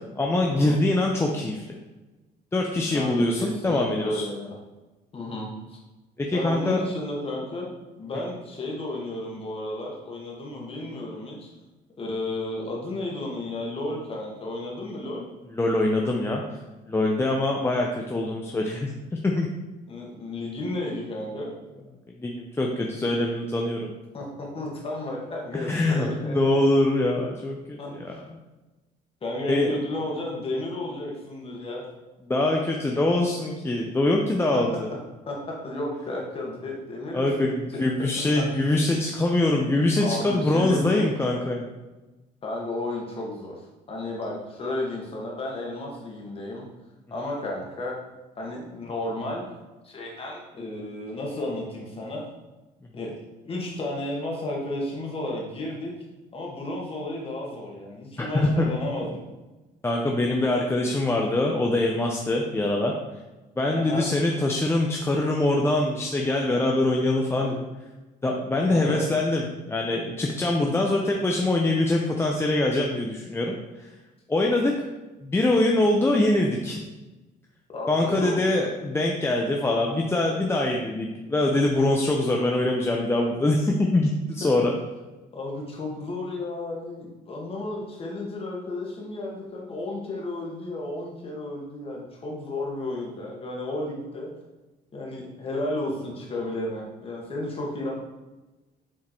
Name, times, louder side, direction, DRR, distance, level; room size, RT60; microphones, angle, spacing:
voice 1, 0.2-1.7 2.5-4.3 6.2-6.8 15.5-16.6 16.9-19.5 22.2-23.9 25.5-27.8 28.0-28.1 29.5-29.7 32.3-34.9 37.1-41.7 58.2-58.7 59.8-62.9 63.6-67.7 68.2-73.9 74.3-74.9 75.2-76.8 77.9-84.7, left 2 dB, 15° left, 0 dB, 0.7 m, -24 dB
voice 2, 2.9-4.6 5.1-5.8 6.3-7.7 8.0-11.5 12.0-15.3 19.9-21.5 24.1-26.4 27.8-27.9 29.2-31.8 34.5-34.8 35.3-37.8 38.3-38.4 40.0-41.0 42.4-43.6 43.9-46.7 47.1-48.0 48.4-49.4 49.8-52.2 52.9-53.1 53.4-55.9 56.3-59.2 63.7-64.1 68.7-69.0 77.7-78.6 84.4-84.5 85.3-94.3 94.9-97.9, left 2 dB, 35° left, -2 dB, 2.0 m, -33 dB
7.5 x 3.8 x 4.4 m, 1.1 s
cardioid pair, 110°, 17 cm